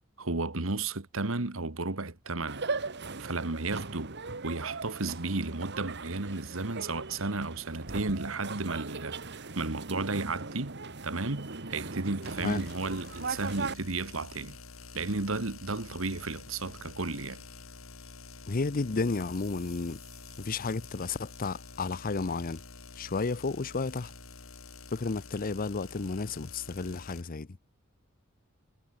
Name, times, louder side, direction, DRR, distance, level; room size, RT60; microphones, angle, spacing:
voice 1, 0.2-2.7 3.2-4.1 4.4-9.2 9.6-14.6 14.9-17.4, right 3 dB, 75° right, 1.7 m, -33 dB
sound 1, 2.5-13.7, right 3 dB, 60° right, 2.0 m, -39 dB
sound 2, 12.2-27.2, left 4 dB, 80° left, 3.8 m, -48 dB
voice 2, 18.5-20.0 20.4-22.6 23.0-24.1 24.9-27.5, left 3 dB, 45° left, 0.7 m, -32 dB
sound 3, 18.5-22.6, left 5 dB, 15° left, 4.5 m, -59 dB
head